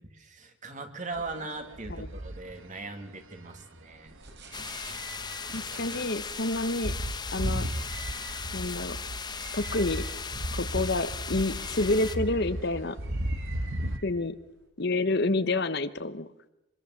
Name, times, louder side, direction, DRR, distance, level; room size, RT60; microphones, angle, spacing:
voice 1, 0.1-4.1 4.5-5.0, right 3 dB, 35° right, 7 dB, 2.4 m, -40 dB
sound 1, 1.2-2.8 3.4-3.6 4.3-4.9 5.2-5.3 5.5-5.6 5.8-14.0, right 1 dB, 70° right, 1.5 m, -35 dB
sound 2, 4.1-14.7, right 3 dB, 55° right, 4.2 m, -49 dB
sound 3, 4.5-12.2, left 5 dB, 20° left, 0.9 m, -38 dB
voice 2, 5.5-6.9 7.3-7.7 8.5-9.0 9.5-10.0 10.5-13.0 14.0-14.4 14.8-16.3, left 2 dB, 50° left, 12 dB, 1.0 m, -28 dB
25.5 x 20.5 x 7.2 m, 0.92 s
head